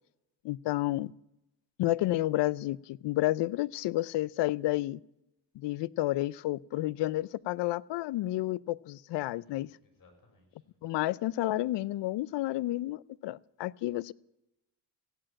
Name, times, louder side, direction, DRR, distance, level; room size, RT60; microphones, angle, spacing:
voice 1, 0.4-1.1 1.8-5.0 5.6-9.7 10.8-14.1, left 16 dB, 75° left, 22 dB, 0.5 m, -31 dB
voice 2, 9.3-10.8, left 2 dB, 50° left, 4 dB, 5.9 m, -64 dB
15.0 x 8.9 x 8.8 m, 0.91 s
cardioid pair, 115°, 43 cm